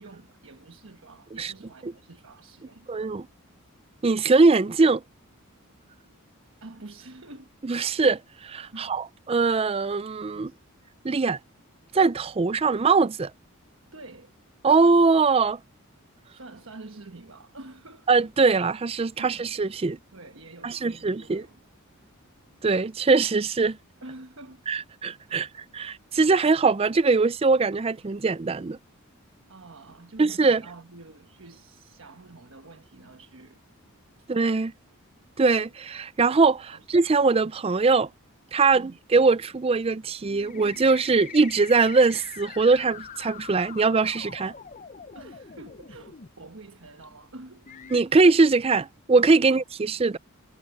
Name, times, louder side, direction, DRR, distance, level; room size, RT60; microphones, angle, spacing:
voice 1, 0.0-3.0 6.6-7.5 8.7-8.9 10.3-10.6 13.9-14.3 16.3-18.1 19.2-19.4 20.1-21.6 22.0-22.1 24.0-24.6 25.3-25.5 29.5-33.6 34.2-34.3 36.7-36.9 38.7-39.0 45.1-47.7 49.4-49.6, right 2 dB, 65° right, 1.3 m, -47 dB
voice 2, 2.9-3.3 4.0-5.0 7.6-10.5 11.0-11.4 11.9-13.3 14.6-15.6 18.1-20.0 20.6-21.5 22.6-23.8 24.7-25.5 25.7-28.8 30.2-30.6 34.3-34.7 35.4-38.1 38.5-44.5 47.9-50.2, right 4 dB, 25° right, 0.4 m, -22 dB
sound 1, 40.2-46.3 47.0-47.1 47.7-48.0, left 7 dB, 35° left, 0.5 m, -43 dB
head